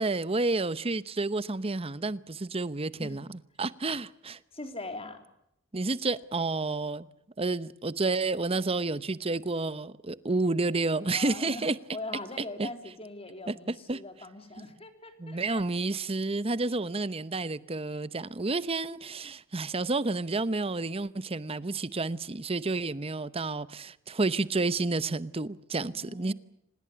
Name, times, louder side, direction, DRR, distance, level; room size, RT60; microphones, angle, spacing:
voice 1, 0.0-3.3 3.6-4.4 5.7-7.1 7.4-11.8 12.6-12.7 13.5-14.0 15.2-26.3, right 3 dB, 30° right, 0.9 m, -30 dB
voice 2, 4.5-5.2 11.0-15.7 25.9-26.3, left 2 dB, 30° left, 3.5 m, -42 dB
26.0 x 20.0 x 8.0 m
head